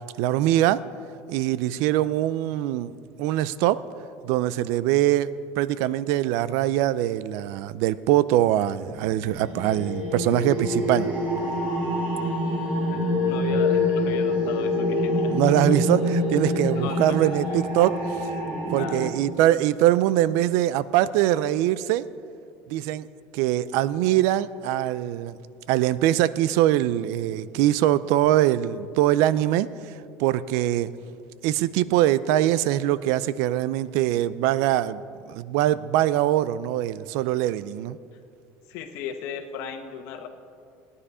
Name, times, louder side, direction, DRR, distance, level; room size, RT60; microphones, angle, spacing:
voice 1, 0.2-0.8 1.3-2.9 3.2-3.8 4.2-5.3 5.6-11.1 15.3-17.9 18.7-22.1 22.7-23.1 23.3-25.4 25.7-30.9 31.4-35.0 35.3-38.0, right 13 dB, 70° right, 17 dB, 0.4 m, -23 dB
sound 1, 8.9-19.0, left 1 dB, 35° right, 3.6 m, -26 dB
voice 2, 12.9-15.3 16.5-17.9 18.8-19.1 38.7-40.3, left 7 dB, 65° left, 6 dB, 1.3 m, -37 dB
18.0 x 9.9 x 4.9 m, 2.4 s
cardioid pair, 155°, 5 cm